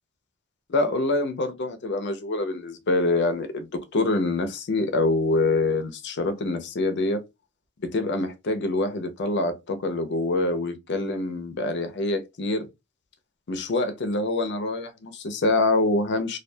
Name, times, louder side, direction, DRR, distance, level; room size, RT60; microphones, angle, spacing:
voice 1, 0.7-7.2 7.8-12.7 13.5-16.4, left 2 dB, 55° left, 0.5 m, -25 dB
2.3 x 2.2 x 2.6 m
head